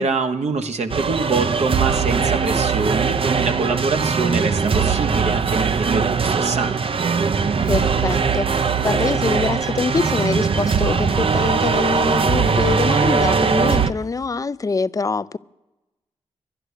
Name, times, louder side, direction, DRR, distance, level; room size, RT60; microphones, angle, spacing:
voice 1, 0.0-6.8, right 4 dB, 70° right, 1.1 m, -24 dB
sound 1, 0.9-13.9, right 5 dB, 50° right, 0.6 m, -20 dB
voice 2, 7.6-15.4, left 4 dB, 30° left, 0.4 m, -24 dB
11.5 x 10.5 x 8.2 m
cardioid pair, 55°, 12 cm